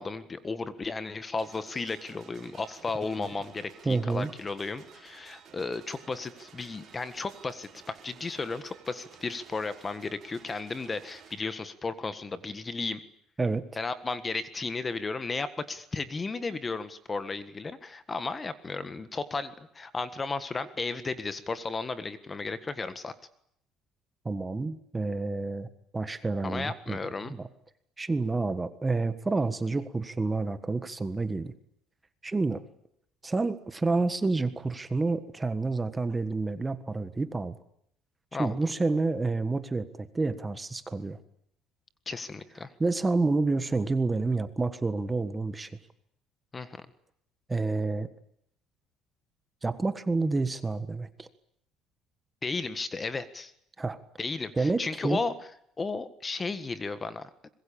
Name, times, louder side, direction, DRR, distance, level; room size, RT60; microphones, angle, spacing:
voice 1, 0.0-13.0 13.8-23.1 26.4-27.3 38.3-38.6 42.1-42.7 46.5-46.9 52.4-53.5 54.2-55.3 55.8-57.5, left 4 dB, 20° left, 13 dB, 1.6 m, -34 dB
sound 1, 1.3-11.4, right 7 dB, 40° right, 6.3 m, -54 dB
voice 2, 3.8-4.3 13.4-13.7 24.2-25.7 25.9-27.0 27.2-27.5 28.0-31.5 32.2-32.6 33.2-37.5 38.4-41.2 42.8-45.7 47.5-48.1 49.6-51.3 53.8-54.0 54.6-55.2, right 3 dB, 15° right, 12 dB, 1.5 m, -29 dB
25.0 x 22.0 x 8.7 m, 0.72 s
cardioid pair, 140°, 0 cm